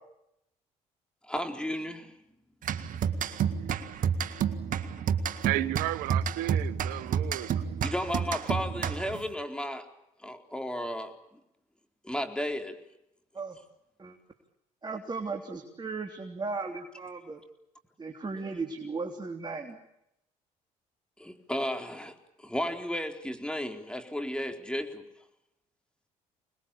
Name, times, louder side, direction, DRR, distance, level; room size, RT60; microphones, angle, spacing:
voice 1, 1.2-2.1 7.8-9.9 10.2-11.1 12.0-12.8 21.2-25.0, left 1 dB, 5° left, 5 dB, 4.2 m, -34 dB
sound 1, 2.6-9.3, right 7 dB, 60° right, 1.8 m, -30 dB
voice 2, 5.4-7.6, right 16 dB, 85° right, 17 dB, 1.1 m, -33 dB
voice 3, 14.8-17.4 18.0-19.8, right 4 dB, 30° right, 3 dB, 3.4 m, -36 dB
26.5 x 21.0 x 8.6 m, 0.84 s
supercardioid pair, 65°, 15 cm